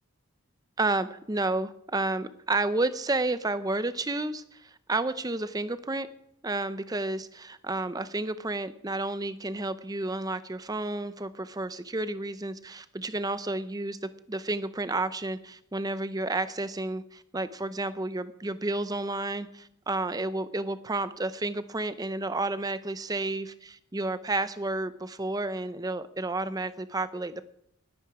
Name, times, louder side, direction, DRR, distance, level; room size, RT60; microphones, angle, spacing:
voice 1, 0.8-6.1 6.4-27.4, right 2 dB, 15° right, 13 dB, 0.6 m, -31 dB
20.0 x 9.0 x 4.8 m, 0.74 s
head